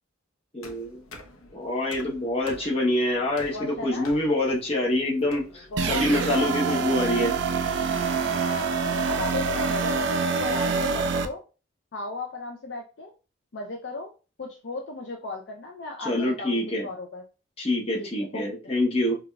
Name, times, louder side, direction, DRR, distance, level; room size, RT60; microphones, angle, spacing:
voice 1, 0.5-1.0 1.5-7.3 16.0-16.9 17.6-19.2, left 1 dB, 30° left, -3 dB, 0.8 m, -26 dB
sound 1, 0.6-6.0, left 1 dB, 90° left, 0.7 m, -46 dB
voice 2, 3.5-4.1 5.7-7.0 8.4-11.4 11.9-13.1 13.5-14.1 14.4-17.2 18.0-18.1 18.3-18.5, left 2 dB, 55° left, 3 dB, 0.4 m, -36 dB
sound 2, 5.8-11.3, right 5 dB, 60° right, 0.4 m, -26 dB
4.8 x 2.4 x 2.3 m, 0.33 s
head